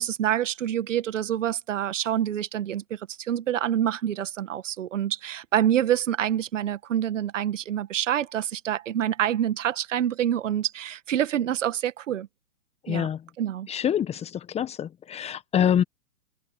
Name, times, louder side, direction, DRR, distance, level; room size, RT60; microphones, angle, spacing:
voice 1, 0.0-12.3 12.9-13.1 13.4-13.7, right 10 dB, 60° right, 1.8 m, -27 dB
voice 2, 12.8-13.2 13.7-15.8, left 9 dB, 15° left, 1.5 m, -26 dB
hypercardioid pair, 125°, 43 cm